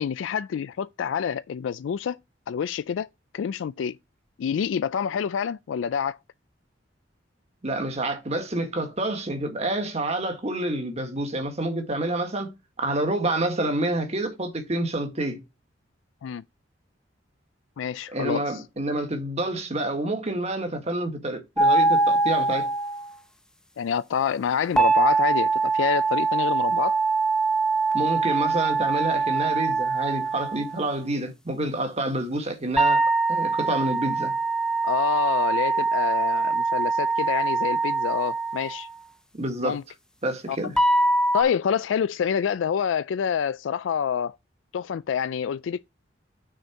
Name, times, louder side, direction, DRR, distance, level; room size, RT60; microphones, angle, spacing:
voice 1, 0.0-2.2 2.5-3.1 3.3-4.0 4.4-6.2 16.2-16.4 17.8-18.6 23.8-27.0 34.8-38.9 39.6-39.8 40.5-40.6 41.3-44.4 44.7-45.8, left 7 dB, 80° left, 0.3 m, -27 dB
voice 2, 7.6-15.4 18.1-22.7 27.9-34.3 39.3-39.8 40.2-40.7, right 1 dB, 35° right, 1.7 m, -28 dB
sound 1, 21.6-23.1 24.8-30.8 32.8-38.9 40.8-41.4, right 3 dB, 5° left, 0.7 m, -23 dB
6.4 x 4.3 x 5.8 m
head